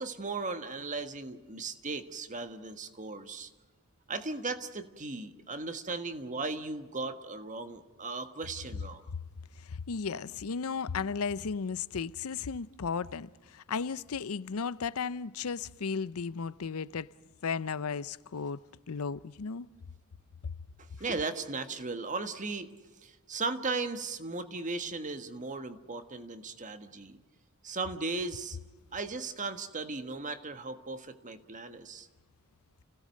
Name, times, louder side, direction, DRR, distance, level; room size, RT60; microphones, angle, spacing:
voice 1, 0.0-3.5 4.1-9.0 21.0-22.7 23.0-27.2 27.6-28.6 28.9-32.1, right 3 dB, 35° right, 1.5 m, -37 dB
voice 2, 9.6-17.1 17.4-18.6 18.9-19.7 20.4-20.5, left 5 dB, 80° left, 0.6 m, -35 dB
30.0 x 17.0 x 6.5 m
head